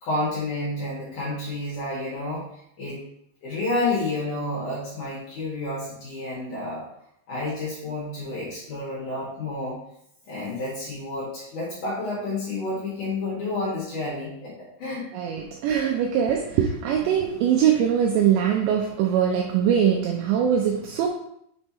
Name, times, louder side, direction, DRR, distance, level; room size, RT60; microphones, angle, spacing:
voice 1, 0.0-2.4 2.8-3.0 3.4-6.8 7.3-9.8 10.3-15.1, left 2 dB, 55° left, -7 dB, 2.4 m, -30 dB
voice 2, 15.1-21.1, right 8 dB, 85° right, 1 dB, 2.5 m, -22 dB
6.9 x 3.4 x 4.1 m, 0.73 s
omnidirectional pair, 5.6 m